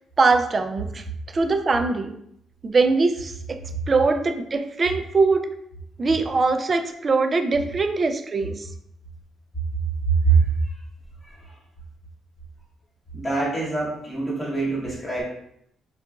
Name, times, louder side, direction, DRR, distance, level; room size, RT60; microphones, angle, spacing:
voice 1, 0.2-1.0 1.3-2.2 2.6-3.6 3.9-5.4 6.0-8.7, right 3 dB, 35° right, 8 dB, 0.3 m, -22 dB
voice 2, 10.0-10.5 11.2-11.6 13.1-15.2, right 4 dB, 20° left, -6 dB, 1.0 m, -23 dB
3.8 x 2.4 x 2.3 m, 0.74 s
cardioid pair, 90°, 0 cm